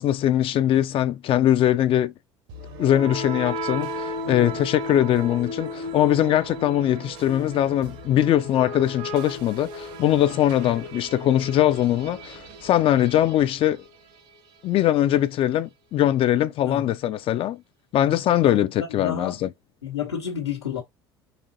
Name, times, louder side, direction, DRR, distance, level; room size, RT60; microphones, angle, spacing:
voice 1, 0.0-2.1 2.8-13.8 14.6-17.6 17.9-19.5, left 12 dB, 40° left, 0.5 m, -21 dB
sound 1, 2.5-14.4, equal, 60° right, 1.0 m, -35 dB
voice 2, 18.8-19.4 19.8-20.8, left 8 dB, 90° left, 1.1 m, -30 dB
4.2 x 3.0 x 2.6 m
figure-of-eight pair, 70°, 14 cm